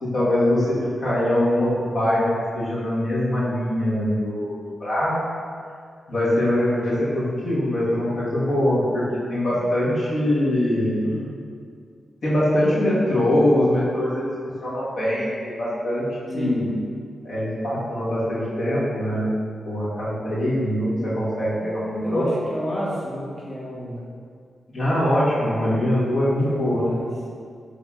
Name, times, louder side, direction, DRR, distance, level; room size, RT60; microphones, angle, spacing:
voice 1, 0.0-5.2 6.1-11.0 12.2-14.3 14.6-16.8 17.2-19.3 19.6-22.3 24.7-26.8, left 1 dB, 65° left, -8 dB, 1.3 m, -23 dB
voice 2, 16.3-16.6 21.6-21.7 22.0-24.1 26.4-27.1, equal, 15° left, -7 dB, 1.3 m, -31 dB
5.7 x 3.4 x 2.4 m, 2.2 s
cardioid pair, 70°, 0 cm